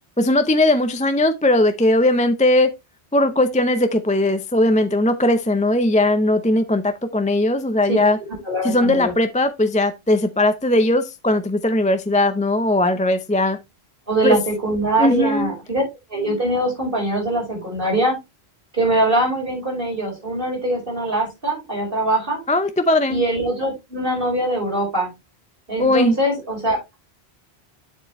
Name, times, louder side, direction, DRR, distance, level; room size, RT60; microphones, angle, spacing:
voice 1, 0.2-2.7 3.1-8.2 8.6-13.6 14.2-14.4 15.0-15.5 22.5-23.2 25.8-26.2, left 1 dB, 10° left, 0.5 m, -18 dB
voice 2, 8.5-9.1 14.1-15.8 16.1-18.2 18.7-22.4 23.1-25.1 25.7-27.0, right 1 dB, 55° right, 5.7 m, -22 dB
7.6 x 7.4 x 3.1 m
omnidirectional pair, 1.1 m